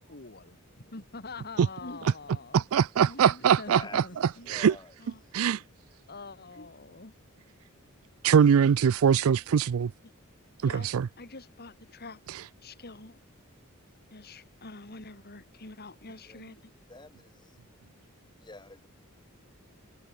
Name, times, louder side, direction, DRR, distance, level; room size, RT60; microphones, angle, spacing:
voice 1, 0.0-2.7 3.0-4.5 5.0-5.6 6.1-7.1 10.0-10.1 10.6-10.9 11.2-13.2 14.1-16.7, left 3 dB, 50° left, 2.6 m, -46 dB
voice 2, 2.5-4.0 4.5-4.7 5.3-5.6 8.2-9.9 10.6-11.1, right 7 dB, 75° right, 0.4 m, -22 dB
voice 3, 3.6-4.0 4.4-4.9 16.3-16.4 16.9-17.6 18.4-18.9, left 3 dB, 20° left, 3.2 m, -47 dB
head